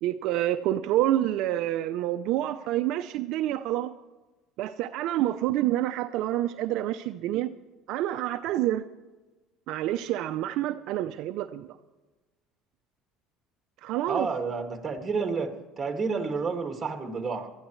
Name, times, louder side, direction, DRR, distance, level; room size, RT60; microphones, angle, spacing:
voice 1, 0.0-3.9 4.6-7.5 7.9-8.8 9.7-11.8 13.8-14.3, right 13 dB, 65° right, 0.6 m, -28 dB
voice 2, 14.1-17.5, right 4 dB, 20° right, 2.3 m, -30 dB
19.5 x 13.5 x 3.2 m
cardioid pair, 115°, 0 cm